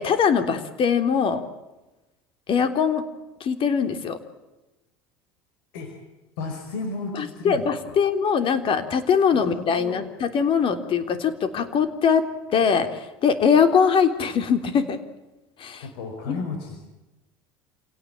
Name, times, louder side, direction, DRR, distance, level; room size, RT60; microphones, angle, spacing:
voice 1, 0.0-1.4 2.5-3.0 3.4-4.2 7.1-15.0 15.6-15.8 16.3-16.4, left 6 dB, 45° left, 8 dB, 3.5 m, -22 dB
voice 2, 6.4-8.0 9.3-10.0 15.8-16.8, left 3 dB, 75° left, 5 dB, 4.9 m, -33 dB
28.0 x 18.0 x 8.9 m, 1.1 s
hypercardioid pair, 80°, 12 cm